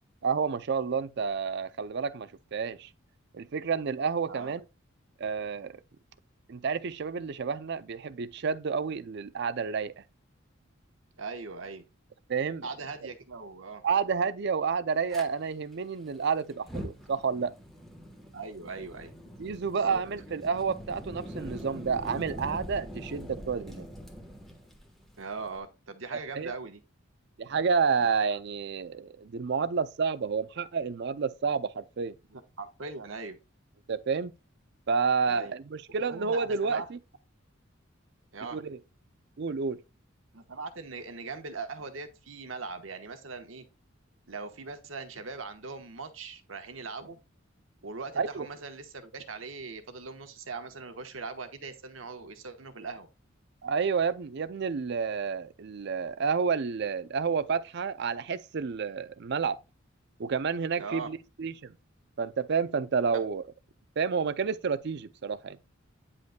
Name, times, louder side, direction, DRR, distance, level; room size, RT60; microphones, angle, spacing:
voice 1, 0.2-2.9 3.3-4.6 5.2-5.7 6.5-9.9 12.3-12.7 13.8-17.5 19.4-23.9 26.3-26.5 27.4-32.2 33.9-34.3 34.9-37.0 38.5-38.8 39.4-39.8 48.2-48.5 53.6-59.6 60.2-61.7 62.2-63.4 64.0-65.6, right 5 dB, 55° right, 0.5 m, -30 dB
voice 2, 11.2-11.8 12.6-13.8 18.3-19.1 19.7-20.0 25.2-26.8 28.0-28.1 32.3-33.4 35.3-35.5 36.0-36.9 38.3-38.6 40.3-43.6 44.3-47.2 47.8-53.1 60.8-61.1, right 4 dB, 75° right, 1.1 m, -40 dB
Fire, 15.1-15.2 16.5-25.6, equal, ahead, 1.2 m, -43 dB
9.6 x 5.2 x 2.2 m
head